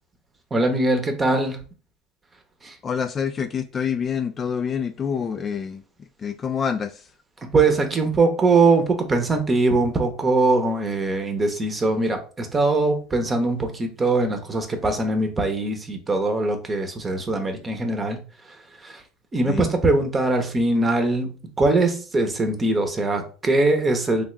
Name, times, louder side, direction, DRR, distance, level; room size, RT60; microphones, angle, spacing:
voice 1, 0.5-1.6 2.6-2.8 7.4-18.2 18.5-19.0 19.3-24.2, right 3 dB, 25° right, 6 dB, 0.8 m, -22 dB
voice 2, 2.8-5.8 6.2-7.1 19.5-19.7, left 7 dB, 35° left, 8 dB, 0.3 m, -27 dB
3.5 x 2.4 x 3.1 m, 0.37 s
supercardioid pair, 90°, 0 cm